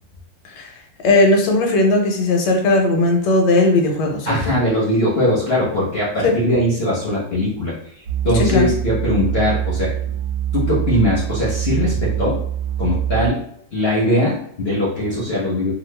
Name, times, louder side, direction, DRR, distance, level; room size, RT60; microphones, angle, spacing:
voice 1, 1.0-4.5 6.2-6.3 8.5-8.6, left 2 dB, 75° left, 2 dB, 1.3 m, -17 dB
voice 2, 4.3-7.7 8.2-9.9 10.5-12.4 12.8-13.4 13.7-15.7, left 1 dB, 50° left, -5 dB, 0.8 m, -20 dB
sound 1, 8.1-13.3, right 11 dB, 65° right, 1.2 m, -24 dB
3.1 x 2.3 x 3.2 m, 0.69 s
omnidirectional pair, 2.0 m